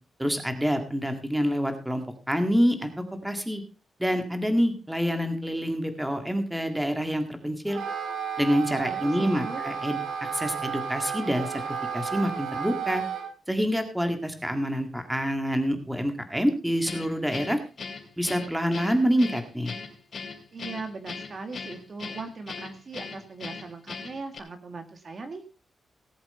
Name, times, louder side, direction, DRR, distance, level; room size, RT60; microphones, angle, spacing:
voice 1, 0.2-2.9 3.2-3.6 4.0-7.8 8.4-13.0 13.5-17.6 18.2-19.7, equal, 5° right, 6 dB, 1.9 m, -27 dB
Wind instrument woodwind instrument, 7.6-13.3, right 7 dB, 85° right, 3.3 m, -32 dB
voice 2, 8.9-9.6 20.5-25.4, right 3 dB, 40° right, 7 dB, 1.9 m, -39 dB
Guitar, 16.8-24.4, left 5 dB, 50° left, 3.2 m, -39 dB
18.0 x 7.9 x 4.3 m, 0.34 s
wide cardioid pair, 135°, 0 cm